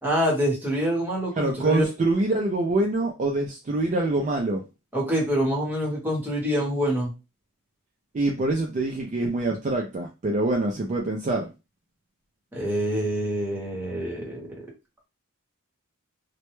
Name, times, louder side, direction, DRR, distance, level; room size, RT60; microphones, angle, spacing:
voice 1, 0.0-1.8 4.9-7.1 12.5-14.7, equal, 10° right, -3 dB, 0.9 m, -26 dB
voice 2, 1.4-4.6 8.1-11.5, right 2 dB, 35° right, 1 dB, 0.4 m, -25 dB
2.2 x 2.1 x 3.0 m, 0.27 s
head